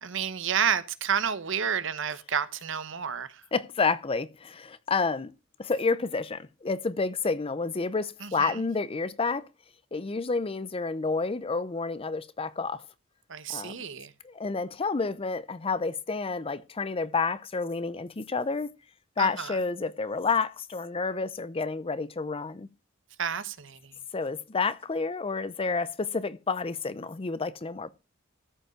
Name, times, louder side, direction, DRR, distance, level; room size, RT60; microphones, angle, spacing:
voice 1, 0.0-3.4 8.2-8.6 13.3-14.1 19.2-19.6 23.2-23.9, right 7 dB, 65° right, 0.9 m, -30 dB
voice 2, 3.5-5.3 5.6-9.5 9.9-12.8 13.5-13.7 14.2-18.7 19.2-22.7 24.1-27.9, left 4 dB, 30° left, 0.5 m, -29 dB
13.5 x 5.4 x 4.9 m
head